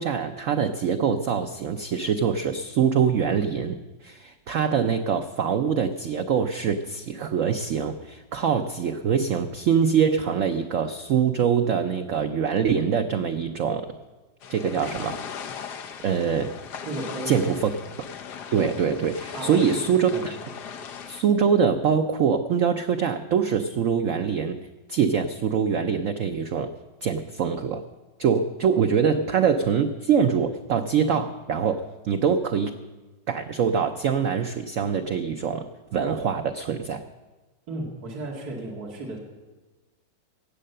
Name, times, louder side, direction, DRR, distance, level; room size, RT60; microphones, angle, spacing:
voice 1, 0.0-3.8 4.0-13.9 14.5-15.2 16.0-16.5 17.3-17.6 18.5-20.4 21.1-24.6 24.9-26.7 27.0-27.8 28.2-32.7 33.3-37.1, right 7 dB, 85° right, 7 dB, 0.7 m, -24 dB
sound 1, 14.4-21.2, left 7 dB, 65° left, 1.3 m, -38 dB
voice 2, 16.9-17.6 19.3-20.3 37.7-39.2, right 2 dB, 50° right, -2 dB, 2.5 m, -34 dB
17.5 x 7.6 x 6.6 m, 1.2 s
omnidirectional pair, 2.1 m